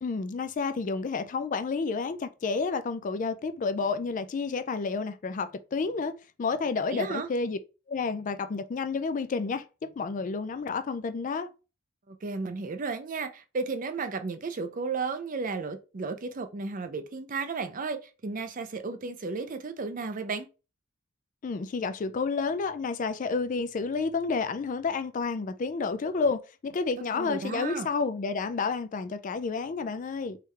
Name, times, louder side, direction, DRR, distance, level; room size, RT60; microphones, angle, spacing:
voice 1, 0.0-6.1 6.4-7.6 7.9-11.5 21.4-30.4, left 4 dB, 40° left, 0.3 m, -30 dB
voice 2, 6.9-7.3 12.1-20.5 27.1-27.9, right 4 dB, 40° right, 0.5 m, -34 dB
3.6 x 3.3 x 3.2 m
head